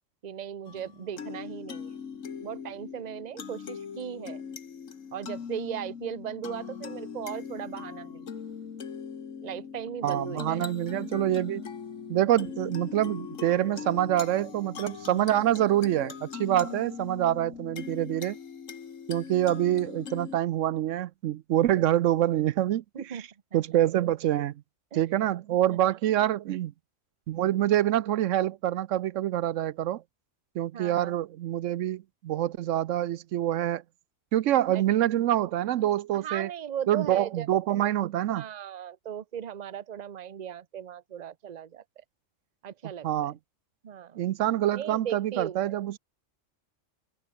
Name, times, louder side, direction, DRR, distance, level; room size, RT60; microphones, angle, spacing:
voice 1, 0.2-1.9 2.4-4.4 5.1-8.3 9.4-10.7 16.6-16.7 22.9-23.6 24.9-25.0 25.7-25.9 30.7-31.2 34.7-34.9 36.2-37.5 37.7-37.8 38.3-41.8 42.6-43.3 43.8-44.2 44.7-45.7, right 9 dB, 40° right, 0.8 m, -37 dB
kalimba pensive, 0.7-20.4, left 6 dB, 85° left, 1.9 m, -40 dB
voice 2, 10.0-11.6 12.1-18.4 19.1-23.2 23.5-24.5 24.9-26.7 27.3-30.0 30.5-33.8 34.3-36.5 36.9-38.4 43.0-43.4 44.2-46.0, right 12 dB, 80° right, 1.0 m, -26 dB
omnidirectional pair, 1.3 m